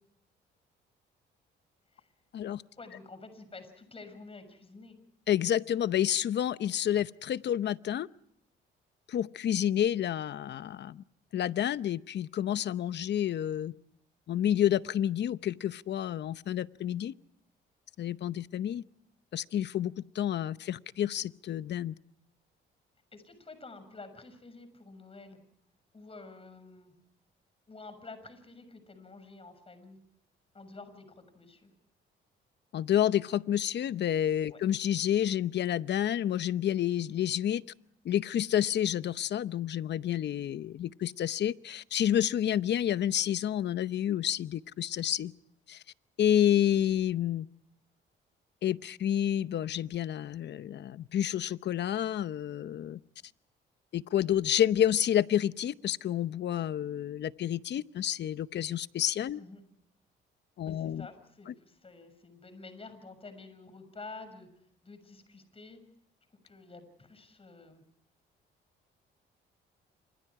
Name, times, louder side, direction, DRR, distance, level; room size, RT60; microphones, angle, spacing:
voice 1, 2.8-5.0 23.1-25.4 25.9-26.9 27.7-30.0 30.5-31.7 34.5-34.6 59.3-59.6 60.6-64.5 64.8-65.8 66.4-67.8, left 3 dB, 30° left, 10 dB, 6.6 m, -49 dB
voice 2, 5.3-8.1 9.1-11.0 11.3-13.7 14.3-17.1 18.0-18.8 19.3-21.9 32.7-37.6 38.0-45.3 45.7-45.8 46.2-47.5 48.6-53.0 53.9-59.4 60.6-61.1, left 10 dB, 60° left, 15 dB, 0.8 m, -29 dB
28.5 x 26.0 x 4.8 m, 0.70 s
cardioid pair, 90°, 20 cm